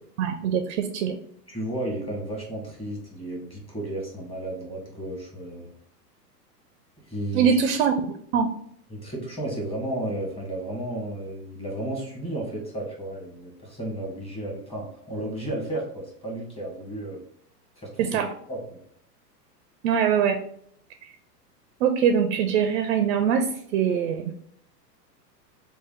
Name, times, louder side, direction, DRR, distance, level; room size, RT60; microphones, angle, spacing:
voice 1, 0.2-1.2 7.3-7.9 8.3-8.5 18.0-18.3 19.8-20.4 21.8-24.3, right 7 dB, 45° right, 8 dB, 0.4 m, -23 dB
voice 2, 1.5-5.7 7.0-7.5 8.9-17.2 17.8-18.2 18.5-18.8, right 1 dB, 10° left, -2 dB, 1.3 m, -33 dB
3.2 x 2.3 x 3.8 m, 0.66 s
hypercardioid pair, 110°, 49 cm